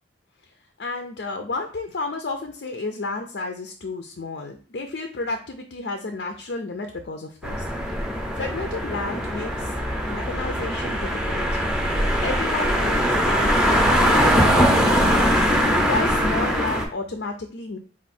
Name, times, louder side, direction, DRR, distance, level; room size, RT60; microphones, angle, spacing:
voice 1, 0.8-8.0 8.3-9.8 10.1-11.5 12.2-15.3 15.8-17.8, left 3 dB, 65° left, 4 dB, 0.5 m, -32 dB
sound 1, 7.4-16.8, equal, 5° right, 0.7 m, -21 dB
4.5 x 2.5 x 4.2 m, 0.41 s
head